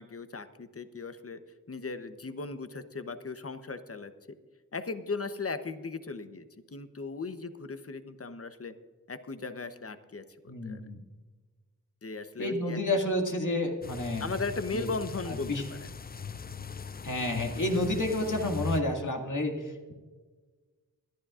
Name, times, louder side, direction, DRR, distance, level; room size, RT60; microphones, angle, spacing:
voice 1, 0.0-1.4 1.7-4.1 4.7-8.7 9.1-10.8 12.0-12.8 14.2-15.5 15.8-15.9, left 3 dB, 45° left, 10 dB, 0.9 m, -37 dB
voice 2, 10.5-11.0 12.4-14.2 14.7-14.9 15.3-15.6 17.0-19.9, left 1 dB, 65° left, 2 dB, 2.0 m, -30 dB
sound 1, 13.8-18.8, left 5 dB, 30° left, 0.4 m, -39 dB
21.0 x 11.5 x 2.5 m, 1.4 s
wide cardioid pair, 50°, 33 cm